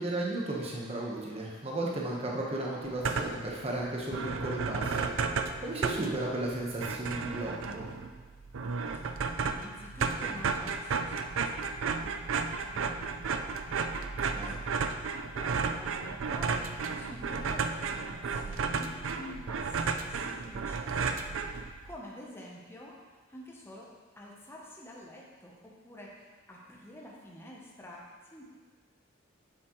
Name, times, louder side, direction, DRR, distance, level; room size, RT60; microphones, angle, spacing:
voice 1, 0.0-7.8 14.3-14.6, right 1 dB, 30° right, -2 dB, 1.3 m, -35 dB
sound 1, 2.8-3.5 3.8-3.9 4.1-21.9, right 5 dB, 85° right, 0.4 m, -33 dB
voice 2, 8.8-14.7 15.0-23.0 23.3-28.4, left 1 dB, 10° left, -3 dB, 0.9 m, -49 dB
7.6 x 7.1 x 3.2 m, 1.4 s
head